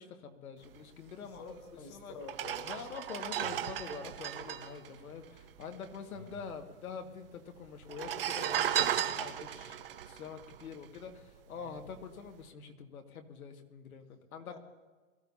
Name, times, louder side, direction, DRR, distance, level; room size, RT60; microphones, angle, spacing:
voice 1, 0.0-2.2 2.6-9.8 10.0-14.6, left 6 dB, 80° left, 4 dB, 2.0 m, -46 dB
voice 2, 1.2-2.9 6.1-6.4 11.5-11.8 14.5-14.6, left 3 dB, 25° left, 3 dB, 1.7 m, -49 dB
sound 1, 1.6-1.7 2.2-5.9 6.2-6.3 6.4-7.1 7.8-11.3 11.8-12.0, right 10 dB, 40° right, 0.8 m, -35 dB
23.0 x 14.0 x 2.8 m, 1.4 s
hypercardioid pair, 180°, 42 cm